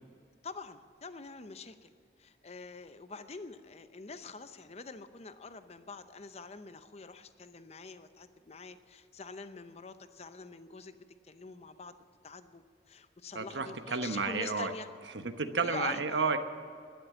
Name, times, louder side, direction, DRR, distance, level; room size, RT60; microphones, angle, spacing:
voice 1, 0.4-1.9 2.2-11.9 12.2-14.9 15.6-16.0, left 4 dB, 35° left, 11 dB, 0.7 m, -45 dB
voice 2, 13.3-14.7 15.1-16.4, right 4 dB, 90° right, 8 dB, 1.1 m, -31 dB
12.5 x 10.5 x 8.9 m, 2.2 s
head